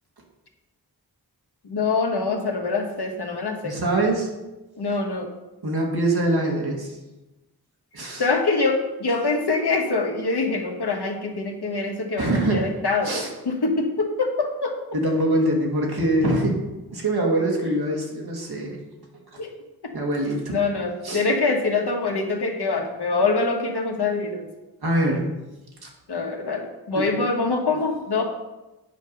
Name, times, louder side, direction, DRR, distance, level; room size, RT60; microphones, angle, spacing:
voice 1, 1.6-3.7 4.8-5.3 8.2-13.1 13.4-14.8 19.4-19.5 19.8-19.9 20.5-24.5 26.1-28.2, left 3 dB, 80° left, 2 dB, 1.5 m, -24 dB
voice 2, 3.6-4.3 5.6-7.0 7.9-8.2 12.2-12.7 13.0-13.3 14.9-16.6 16.9-18.8 19.3-19.4 19.9-20.5 21.0-21.2 24.8-25.3 26.9-27.0, right 1 dB, 70° right, -1 dB, 2.1 m, -23 dB
9.1 x 5.8 x 5.4 m, 1.0 s
wide cardioid pair, 75°, 39 cm